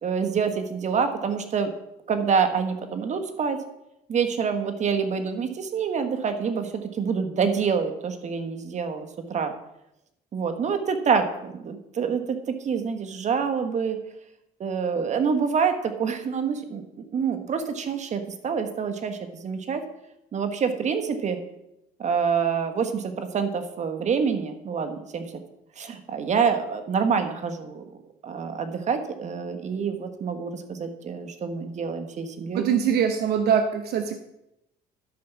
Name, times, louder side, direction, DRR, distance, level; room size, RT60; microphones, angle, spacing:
voice 1, 0.0-1.7 2.1-3.6 4.1-9.5 10.3-14.0 14.6-16.8 17.1-19.8 20.3-21.4 22.0-25.3 25.8-27.8 28.2-32.7, right 6 dB, 45° right, 7 dB, 1.4 m, -26 dB
voice 2, 32.5-34.2, right 7 dB, 70° right, 7 dB, 0.8 m, -23 dB
12.5 x 5.2 x 6.0 m, 0.86 s
cardioid pair, 110°, 17 cm